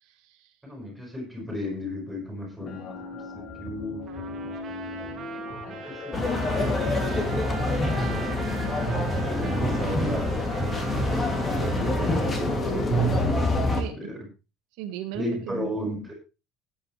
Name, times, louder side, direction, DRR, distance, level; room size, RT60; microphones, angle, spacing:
voice 1, 0.0-0.5 5.3-5.8 13.8-14.1 14.8-15.8, right 12 dB, 75° right, 6 dB, 1.3 m, -38 dB
voice 2, 0.6-4.0 5.7-7.3 9.5-10.3 10.9-11.4 11.7-14.3 15.1-16.1, left 1 dB, 5° right, 1 dB, 5.8 m, -35 dB
sound 1, 2.6-8.3, left 3 dB, 40° left, 2.6 m, -39 dB
Trumpet, 4.1-12.4, right 8 dB, 35° right, 2.0 m, -41 dB
sound 2, 6.1-13.8, left 1 dB, 20° left, 2.5 m, -26 dB
17.5 x 8.9 x 3.2 m, 0.29 s
cardioid pair, 155°, 0 cm